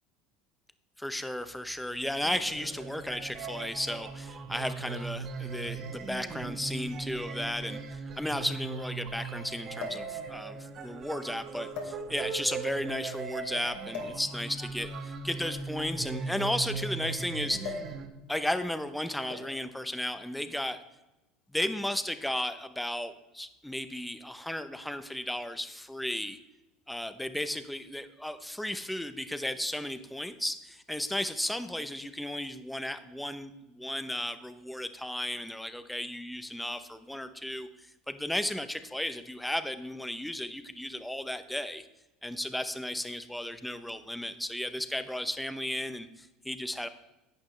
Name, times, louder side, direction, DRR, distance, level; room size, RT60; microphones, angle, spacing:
voice 1, 1.0-17.8 18.3-20.8 21.5-26.4 26.9-41.8 42.2-46.9, left 1 dB, 5° left, 11 dB, 0.7 m, -34 dB
sound 1, 2.2-18.1, right 4 dB, 40° right, 1.4 m, -39 dB
sound 2, 6.0-6.1 7.2-7.3 7.6-7.7 9.8-10.2 11.0-11.2 11.7-12.4 13.9-14.3 15.4-17.0 17.6-18.0 18.3-18.5 19.3-19.7 20.6-20.9, left 5 dB, 70° left, 2.8 m, -41 dB
11.5 x 8.9 x 3.2 m, 1.0 s
supercardioid pair, 110°, 0 cm